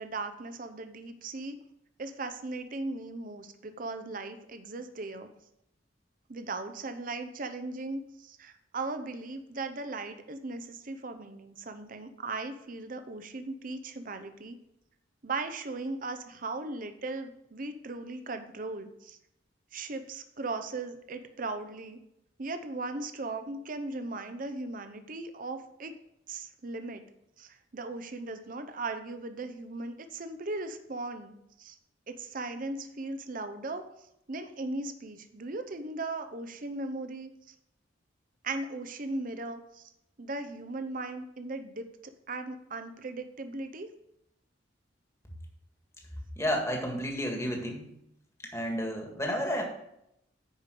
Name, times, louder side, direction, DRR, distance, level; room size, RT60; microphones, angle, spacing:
voice 1, 0.0-1.6 2.0-5.3 6.3-14.6 15.2-19.2 19.7-22.0 22.4-25.9 26.3-27.0 27.4-31.8 32.1-33.8 34.3-37.5 38.4-39.9 40.2-43.9, right 3 dB, 45° right, 8 dB, 0.7 m, -38 dB
voice 2, 46.4-47.9 48.5-49.6, equal, 15° left, 1 dB, 1.7 m, -31 dB
10.0 x 5.0 x 5.0 m, 0.79 s
head